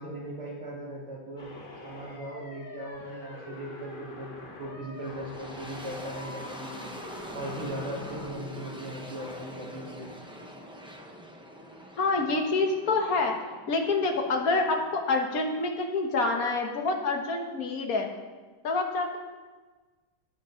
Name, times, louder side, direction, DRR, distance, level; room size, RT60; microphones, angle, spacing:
voice 1, 0.0-6.9 7.3-10.1, right 1 dB, 70° right, -6 dB, 4.5 m, -39 dB
sound 1, 1.4-8.3, left 2 dB, 25° left, 1.5 m, -45 dB
sound 2, 4.9-15.9, equal, 5° right, 0.3 m, -45 dB
voice 2, 12.0-13.3 13.7-18.1 18.6-19.2, left 3 dB, 45° left, 3 dB, 1.6 m, -27 dB
15.5 x 10.0 x 3.8 m, 1.3 s
omnidirectional pair, 2.3 m